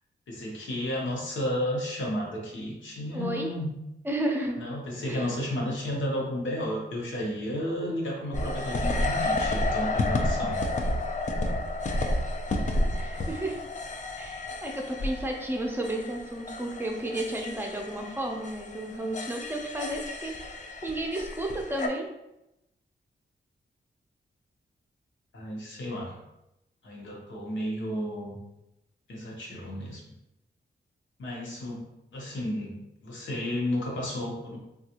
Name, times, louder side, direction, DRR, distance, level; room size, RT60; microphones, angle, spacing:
voice 1, 0.3-3.7 4.6-10.6 25.3-26.1 26.8-28.4 29.1-30.1 31.2-31.8 32.1-32.7 33.0-34.6, left 1 dB, 85° left, -3 dB, 0.9 m, -32 dB
voice 2, 3.1-3.5 4.0-4.6 5.1-5.3 12.9-13.6 14.2-20.3 20.8-22.1, right 1 dB, 10° right, 1 dB, 0.5 m, -32 dB
sound 1, 8.3-21.9, left 1 dB, 40° left, 0.4 m, -31 dB
3.4 x 2.3 x 2.8 m, 0.89 s
wide cardioid pair, 105°, 19 cm